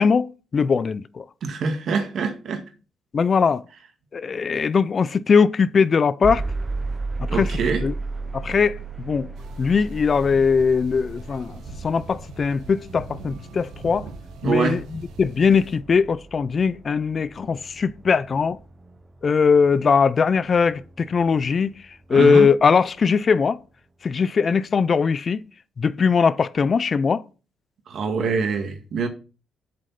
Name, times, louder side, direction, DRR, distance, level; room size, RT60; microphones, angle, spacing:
voice 1, 0.0-1.2 3.1-3.6 4.1-6.4 7.2-7.9 8.3-9.3 9.6-14.1 14.4-14.8 15.2-18.6 19.2-21.7 22.1-23.6 24.0-25.4 25.8-27.2, left 5 dB, 40° left, 0.4 m, -20 dB
voice 2, 1.4-2.6 7.3-7.9 14.4-14.8 22.1-22.5 27.9-29.1, right 5 dB, 65° right, 1.8 m, -24 dB
sound 1, 6.2-22.2, right 3 dB, 25° right, 0.7 m, -35 dB
sound 2, 9.4-15.8, right 3 dB, 85° right, 1.5 m, -42 dB
7.6 x 5.1 x 5.7 m
cardioid pair, 90°, 0 cm